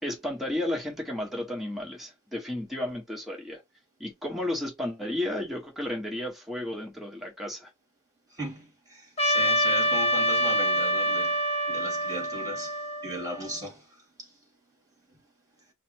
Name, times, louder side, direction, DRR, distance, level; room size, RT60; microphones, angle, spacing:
voice 1, 0.0-3.6 4.0-7.7, left 1 dB, ahead, 1.3 m, -33 dB
voice 2, 8.3-14.4, right 1 dB, 15° right, 2.1 m, -37 dB
Trumpet, 9.2-13.6, right 1 dB, 30° left, 0.8 m, -26 dB
5.4 x 2.1 x 2.9 m
head